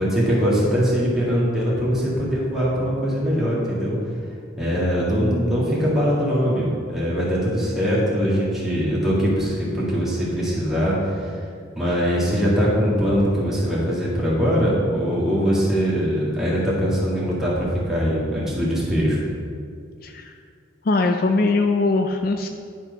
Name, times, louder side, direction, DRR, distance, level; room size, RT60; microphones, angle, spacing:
voice 1, 0.0-4.0 4.6-11.4 11.8-19.2, equal, ahead, -8 dB, 2.0 m, -22 dB
voice 2, 20.0-20.3 20.8-22.5, left 3 dB, 50° left, 5 dB, 0.4 m, -21 dB
11.0 x 4.4 x 5.3 m, 2.2 s
head